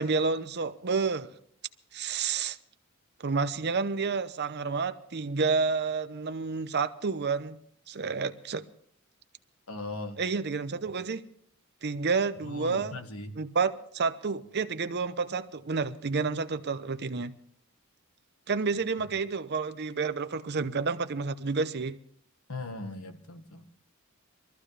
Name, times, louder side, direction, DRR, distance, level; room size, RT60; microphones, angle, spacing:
voice 1, 0.0-1.4 1.9-2.6 3.2-7.6 7.9-8.6 10.2-11.2 11.8-13.0 13.3-17.3 18.5-22.0, right 4 dB, 50° right, 0.8 m, -30 dB
voice 2, 9.7-10.2 12.4-13.3 22.5-23.6, left 2 dB, 80° left, 1.5 m, -39 dB
23.5 x 14.0 x 3.3 m
head